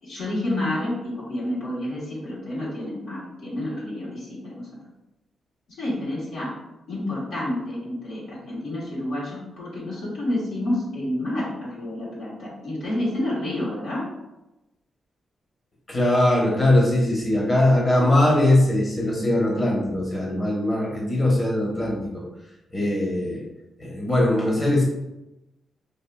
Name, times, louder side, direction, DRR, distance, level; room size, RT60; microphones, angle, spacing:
voice 1, 0.0-4.8 5.7-6.5 6.9-14.1, left 1 dB, 80° left, -7 dB, 1.5 m, -29 dB
voice 2, 15.9-22.2 22.7-23.4 23.8-24.8, left 1 dB, 30° left, -3 dB, 1.0 m, -21 dB
4.9 x 2.6 x 2.3 m, 0.95 s
cardioid pair, 65°, 0 cm